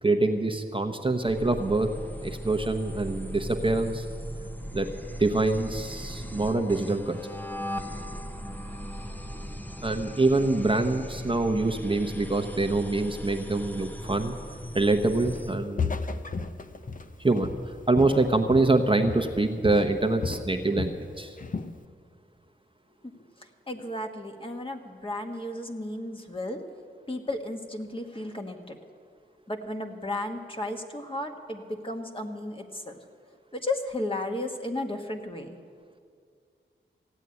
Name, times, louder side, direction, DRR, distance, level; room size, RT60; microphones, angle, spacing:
voice 1, 0.0-1.9 2.2-4.1 4.7-4.9 5.2-7.2 9.8-14.3 14.7-16.0 17.2-17.5 17.9-21.4, right 2 dB, 25° right, 5 dB, 0.9 m, -25 dB
sound 1, 1.2-15.6, equal, 10° left, 0.8 m, -38 dB
Walk footsteps, 15.2-15.5 15.8-18.8 19.1-19.4 19.6-21.0 21.4-21.8, left 4 dB, 40° left, 0.7 m, -33 dB
voice 2, 23.0-26.6 27.1-28.8 29.5-33.0 33.5-35.6, left 1 dB, 25° left, 3 dB, 1.5 m, -34 dB
15.5 x 8.3 x 9.5 m, 2.2 s
cardioid pair, 55°, 21 cm